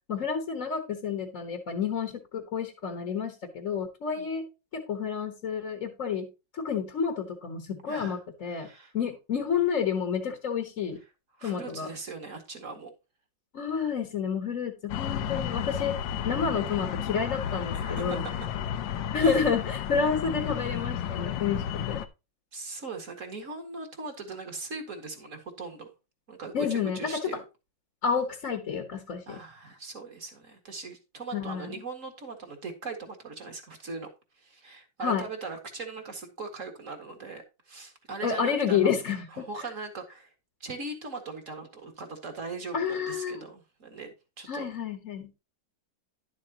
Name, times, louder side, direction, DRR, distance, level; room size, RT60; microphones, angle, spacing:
voice 1, 0.1-4.5 4.7-8.7 8.9-11.0 11.4-11.9 13.5-15.9 16.2-18.2 19.1-22.0 26.5-27.4 28.0-29.4 31.3-31.7 35.0-35.2 38.2-39.5 42.7-43.4 44.5-45.3, left 6 dB, 45° left, 1.4 m, -29 dB
voice 2, 7.9-8.2 8.5-8.9 11.4-12.9 17.7-18.3 19.2-19.4 22.5-25.9 26.3-27.4 29.3-34.1 34.4-38.9 39.3-40.3 40.6-44.7, right 3 dB, 40° right, 2.2 m, -40 dB
sound 1, 14.9-22.1, left 9 dB, 75° left, 1.4 m, -32 dB
11.5 x 7.6 x 2.9 m
omnidirectional pair, 2.1 m